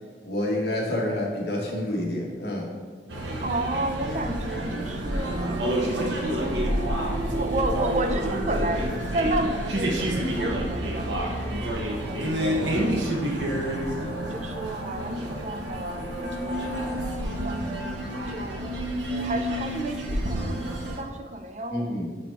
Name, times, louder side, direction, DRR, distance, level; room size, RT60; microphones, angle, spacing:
voice 1, 0.2-2.7 21.7-22.1, left 1 dB, 65° left, -2 dB, 1.4 m, -28 dB
sound 1, 3.1-21.0, right 1 dB, 85° right, 1.0 m, -28 dB
voice 2, 3.4-5.6 6.4-13.6 14.3-16.7 17.4-18.8 19.1-22.0, right 2 dB, 40° right, 6 dB, 0.4 m, -32 dB
6.1 x 4.3 x 4.6 m, 1.5 s
head